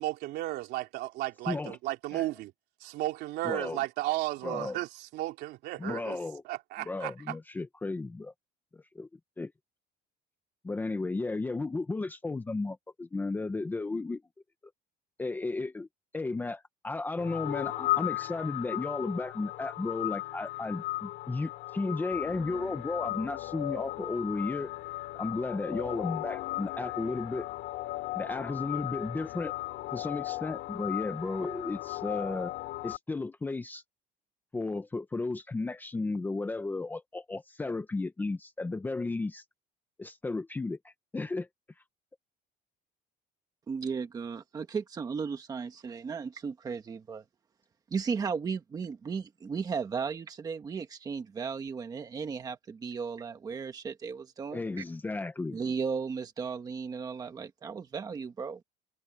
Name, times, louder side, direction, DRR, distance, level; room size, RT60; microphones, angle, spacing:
voice 1, 0.0-2.5 2.8-6.2 6.4-7.3, right 17 dB, 65° right, 3.4 m, -34 dB
voice 2, 1.5-1.8 2.1-2.3 3.4-3.8 4.4-4.8 5.8-6.4 6.8-8.3 8.7-9.1 9.4-9.5 10.6-14.2 15.2-15.9 16.1-24.7 25.1-27.5 28.1-29.5 29.9-32.5 32.8-33.8 34.5-39.4 40.0-41.5 54.5-55.6, left 3 dB, 10° left, 0.8 m, -34 dB
sound 1, 17.2-33.0, left 18 dB, 70° left, 2.8 m, -36 dB
voice 3, 43.7-47.2 47.9-54.6 55.5-58.6, right 5 dB, 20° right, 1.4 m, -35 dB
cardioid pair, 175°, 19 cm